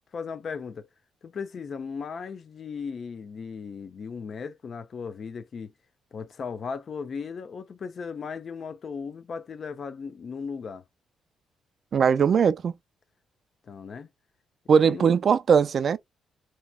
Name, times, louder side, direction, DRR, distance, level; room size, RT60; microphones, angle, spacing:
voice 1, 0.1-0.9 1.2-5.7 6.1-10.8 13.6-14.1 14.6-15.1, left 5 dB, 50° left, 0.6 m, -37 dB
voice 2, 11.9-12.7 14.7-16.0, right 6 dB, 50° right, 0.4 m, -20 dB
2.9 x 2.2 x 2.3 m
cardioid pair, 90°, 0 cm